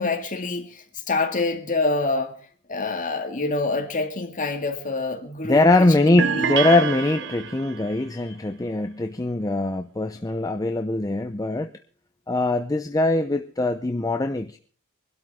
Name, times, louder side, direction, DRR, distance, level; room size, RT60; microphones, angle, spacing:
voice 1, 0.0-2.3 2.7-6.5, left 3 dB, 35° left, 2.1 m, -26 dB
voice 2, 5.4-11.7 12.3-14.6, left 2 dB, 15° left, 0.6 m, -22 dB
sound 1, 6.2-7.9, right 8 dB, 55° right, 0.6 m, -27 dB
23.5 x 12.5 x 3.6 m
head